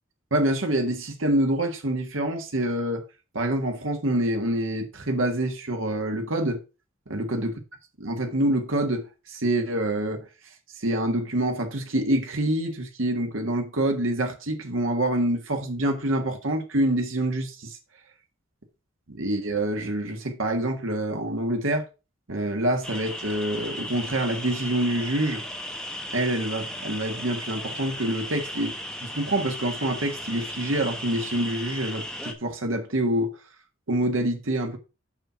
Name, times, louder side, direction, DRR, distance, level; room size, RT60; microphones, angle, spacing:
voice 1, 0.3-3.0 3.3-6.6 7.1-7.5 8.0-10.2 10.8-17.8 19.1-21.8 22.3-25.4 26.1-28.7 29.0-33.3 33.9-34.8, right 1 dB, 80° right, 1.6 m, -26 dB
sound 1, 22.8-32.3, equal, 5° left, 1.3 m, -36 dB
6.7 x 5.9 x 5.7 m
head